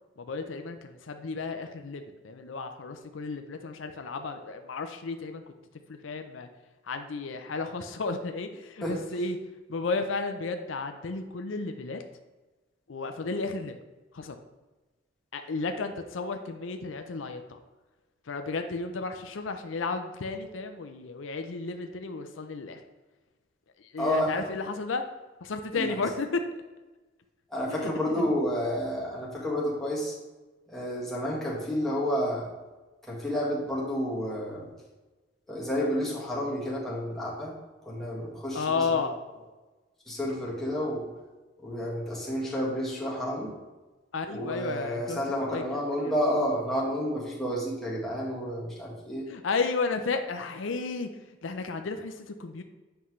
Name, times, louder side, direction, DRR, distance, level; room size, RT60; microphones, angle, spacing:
voice 1, 0.2-5.4 5.9-6.5 6.8-9.4 9.7-12.0 12.9-13.7 14.1-14.4 15.3-17.6 18.3-22.8 23.8-25.0 25.4-26.4 27.7-28.3 38.5-39.1 44.1-45.2 45.5-46.1 49.3-52.6, left 4 dB, 75° left, 7 dB, 0.5 m, -33 dB
voice 2, 24.0-24.4 25.7-25.9 27.5-30.2 30.7-32.5 33.0-34.7 35.5-37.5 37.9-39.0 40.1-41.1 41.6-43.5 44.3-49.3, equal, ahead, -6 dB, 1.8 m, -30 dB
7.9 x 5.6 x 3.1 m, 1.2 s
head